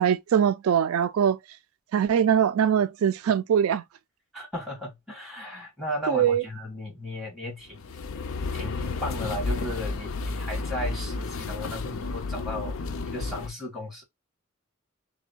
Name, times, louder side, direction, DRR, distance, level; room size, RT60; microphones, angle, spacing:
voice 1, 0.0-1.4 1.9-3.8 6.1-6.4, right 8 dB, 80° right, 0.3 m, -22 dB
voice 2, 4.3-7.8 8.5-12.8 13.0-14.0, left 1 dB, ahead, 2.0 m, -35 dB
sound 1, 7.7-13.5, left 3 dB, 70° left, 0.5 m, -32 dB
3.3 x 2.1 x 4.3 m
head